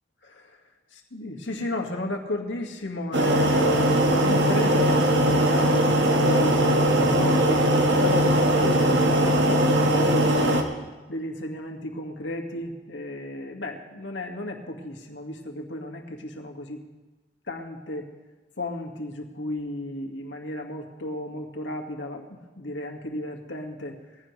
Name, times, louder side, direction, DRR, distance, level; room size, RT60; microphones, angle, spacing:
voice 1, 0.2-0.6 1.1-3.8 4.2-10.6 11.1-16.8 17.5-18.1 18.6-24.0, left 1 dB, 90° left, 1 dB, 2.0 m, -34 dB
sound 1, 3.1-10.6, right 1 dB, 75° right, 1.7 m, -20 dB
20.5 x 15.5 x 3.3 m, 1.2 s
head